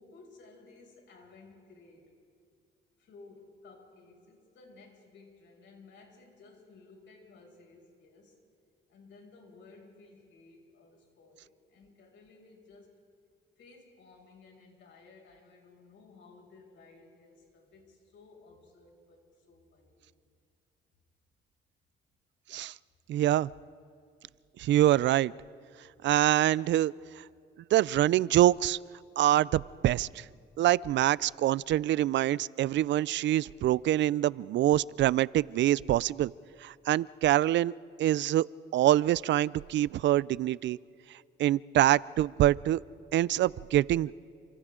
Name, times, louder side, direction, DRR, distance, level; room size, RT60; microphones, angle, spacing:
voice 1, 0.0-2.0 3.0-8.4 8.9-12.9 13.6-20.0, left 3 dB, 70° left, 0 dB, 6.5 m, -56 dB
voice 2, 23.1-23.5 24.6-25.3 26.0-26.9 27.7-28.8 29.2-30.2 30.6-36.3 36.6-37.7 38.0-38.5 38.7-40.8 41.4-42.8 43.1-44.1, right 13 dB, 65° right, 22 dB, 0.4 m, -25 dB
30.0 x 27.5 x 3.8 m, 2.4 s
cardioid pair, 90°, 20 cm